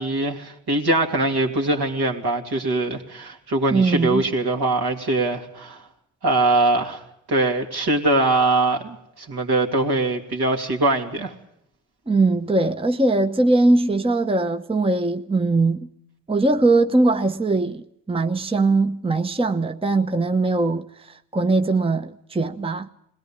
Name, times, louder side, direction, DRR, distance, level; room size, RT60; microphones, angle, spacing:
voice 1, 0.0-5.8 6.2-7.0 7.3-11.3, right 2 dB, 60° right, 2.7 m, -22 dB
voice 2, 3.7-4.2 12.1-15.9 16.3-22.9, right 2 dB, 15° right, 0.9 m, -21 dB
21.5 x 17.0 x 8.7 m
hypercardioid pair, 40°, 43 cm